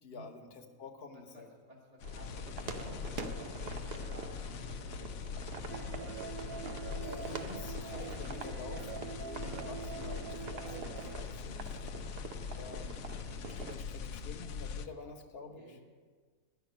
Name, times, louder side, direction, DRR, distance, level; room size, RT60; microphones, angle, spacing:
voice 1, 0.0-1.5 7.0-11.9 12.5-15.8, left 4 dB, 45° left, 3 dB, 1.2 m, -49 dB
voice 2, 1.1-5.0 5.3-6.3 14.9-15.1 15.6-15.8, equal, 25° right, -5 dB, 1.5 m, -56 dB
sound 1, 2.0-14.9, left 6 dB, 65° left, 0.8 m, -42 dB
sound 2, 2.0-13.8, right 5 dB, 50° right, 0.9 m, -46 dB
sound 3, 5.7-11.1, right 8 dB, 80° right, 1.0 m, -45 dB
12.0 x 5.9 x 9.0 m, 1.5 s
omnidirectional pair, 1.5 m